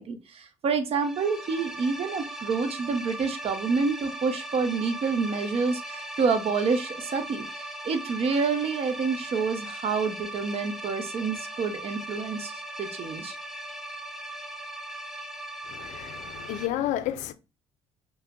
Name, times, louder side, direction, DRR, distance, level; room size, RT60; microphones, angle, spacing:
voice 1, 0.0-13.4, right 5 dB, 50° right, 0.7 m, -28 dB
sound 1, 0.9-16.7, right 1 dB, ahead, 0.6 m, -39 dB
voice 2, 15.7-17.3, left 12 dB, 75° left, 0.4 m, -31 dB
5.5 x 2.1 x 2.3 m
supercardioid pair, 75°, 13 cm